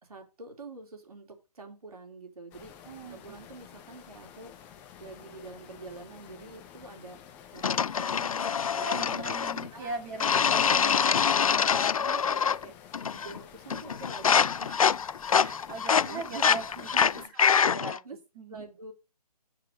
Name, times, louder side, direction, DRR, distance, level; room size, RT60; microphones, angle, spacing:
voice 1, 0.0-2.8 3.1-4.6 5.0-7.2 7.5-9.3 9.7-10.0 10.4-12.7 13.1-14.5 16.1-17.6 18.0-18.2 18.5-18.9, right 3 dB, 65° right, 2 dB, 3.7 m, -46 dB
sound 1, 2.5-17.3, left 9 dB, 10° left, 0.5 m, -51 dB
voice 2, 2.8-3.2 8.8-11.0 14.6-14.8 15.2-16.7 17.7-18.0 18.4-18.6, right 3 dB, 25° right, 2 dB, 2.1 m, -39 dB
sound 2, 7.6-9.7 10.2-12.7 12.9-13.4 13.7-18.0, left 7 dB, 60° left, 0.4 m, -25 dB
7.4 x 6.6 x 5.5 m, 0.28 s
figure-of-eight pair, 145°, 21 cm